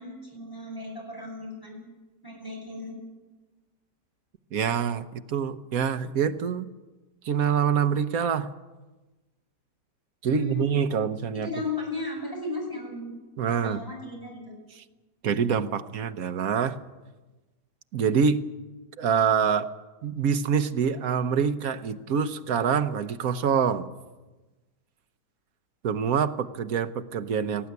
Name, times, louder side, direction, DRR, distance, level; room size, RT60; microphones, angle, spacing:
voice 1, 0.0-1.8 2.2-3.0 10.3-10.6 11.3-13.1 13.5-14.5, left 2 dB, 10° left, -1 dB, 7.3 m, -35 dB
voice 2, 4.5-6.7 7.2-8.5 10.2-11.5 13.4-13.8 14.7-14.8 15.2-16.8 17.9-18.4 19.0-19.7 20.0-23.9 25.8-27.7, right 7 dB, 60° right, 10 dB, 1.3 m, -25 dB
19.0 x 15.0 x 9.6 m, 1.2 s
omnidirectional pair, 1.8 m